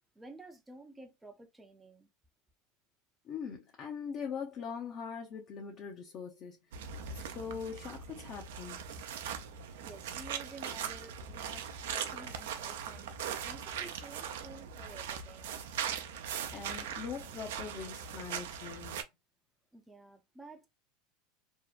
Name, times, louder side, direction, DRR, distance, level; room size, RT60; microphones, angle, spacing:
voice 1, 0.2-2.1 9.0-13.1 13.4-15.6 19.7-20.7, right 2 dB, 10° right, 0.5 m, -52 dB
voice 2, 3.2-6.6 7.1-8.8 16.5-19.1, left 6 dB, 45° left, 0.6 m, -42 dB
sound 1, 6.7-19.0, right 8 dB, 80° right, 0.4 m, -40 dB
2.7 x 2.1 x 2.3 m
supercardioid pair, 115°, 0 cm